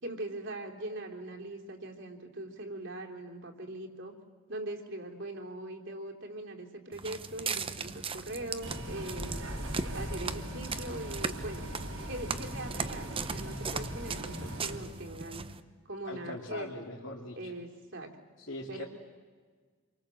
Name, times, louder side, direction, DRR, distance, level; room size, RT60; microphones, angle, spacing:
voice 1, 0.0-4.1 4.5-9.5 9.9-11.7 12.1-15.4 15.8-16.7 17.4-18.1 18.7-18.8, right 1 dB, 60° right, 1 dB, 3.3 m, -41 dB
Walk footsteps, 6.9-15.6, right 5 dB, 25° right, 0.8 m, -38 dB
Bus, 8.6-14.8, equal, 80° right, 5.0 m, -39 dB
voice 2, 16.1-17.5 18.4-18.8, left 1 dB, 60° left, -3 dB, 2.8 m, -41 dB
28.0 x 23.5 x 7.8 m, 1.5 s
head